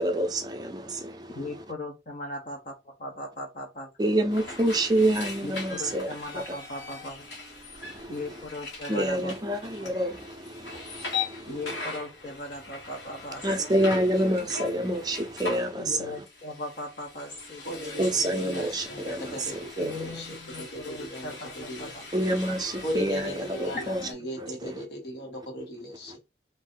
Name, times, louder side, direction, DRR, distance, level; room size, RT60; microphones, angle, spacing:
voice 1, 0.0-1.4 4.0-6.1 7.8-8.2 8.9-11.6 13.4-16.1 18.0-19.9 22.1-24.0 24.4-24.8, right 1 dB, 25° right, 0.6 m, -28 dB
voice 2, 1.3-2.6 3.0-3.9 5.4-7.3 8.1-9.3 9.6-9.9 11.5-13.9 15.8-18.3 19.8-22.6 24.0-24.2, left 2 dB, 45° left, 0.8 m, -39 dB
sound 1, 4.3-24.1, left 4 dB, 90° left, 1.5 m, -40 dB
voice 3, 17.6-21.9 22.8-26.2, equal, 75° left, 1.4 m, -37 dB
2.7 x 2.6 x 3.7 m
head